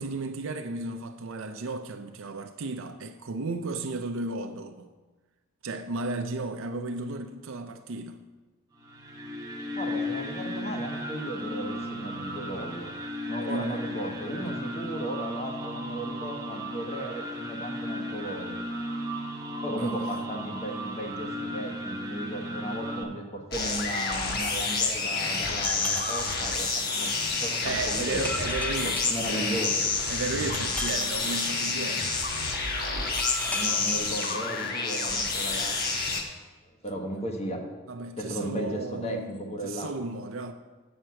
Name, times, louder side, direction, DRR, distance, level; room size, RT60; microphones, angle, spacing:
voice 1, 0.0-4.9 5.6-8.2 13.5-13.8 19.8-20.1 27.6-29.6 30.1-32.2 37.9-40.5, right 3 dB, 75° right, 0.5 m, -34 dB
sound 1, 8.8-23.0, equal, 20° right, 1.0 m, -35 dB
voice 2, 9.7-12.9 13.3-18.6 19.6-26.7 26.9-27.1 27.4-28.3 28.8-29.8 33.4-35.8 36.8-37.6 38.2-39.9, equal, 30° left, 1.2 m, -35 dB
sound 2, 23.5-36.2, left 3 dB, 50° left, 1.2 m, -29 dB
sound 3, 25.6-27.2 28.2-30.0 30.5-32.2 33.1-34.9, left 1 dB, 5° left, 0.5 m, -39 dB
7.8 x 7.5 x 5.7 m
head